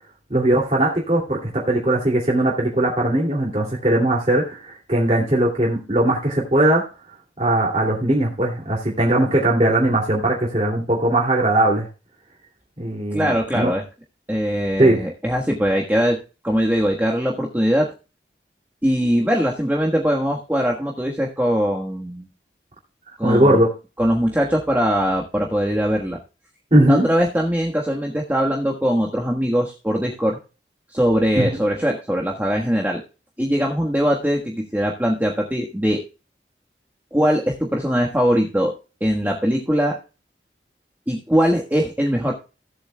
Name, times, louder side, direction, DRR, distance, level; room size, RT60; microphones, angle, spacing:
voice 1, 0.3-6.8 7.4-11.9 12.8-13.7 14.8-15.1 23.2-23.7 26.7-27.0 31.3-31.5, right 1 dB, 35° right, -3 dB, 2.7 m, -19 dB
voice 2, 13.1-13.8 14.3-17.9 18.8-22.3 23.2-23.6 24.0-26.2 26.8-30.4 30.9-33.0 33.4-36.0 37.1-38.7 39.0-40.0 41.1-42.3, equal, 10° right, -1 dB, 1.3 m, -21 dB
17.0 x 8.1 x 2.2 m, 0.31 s
head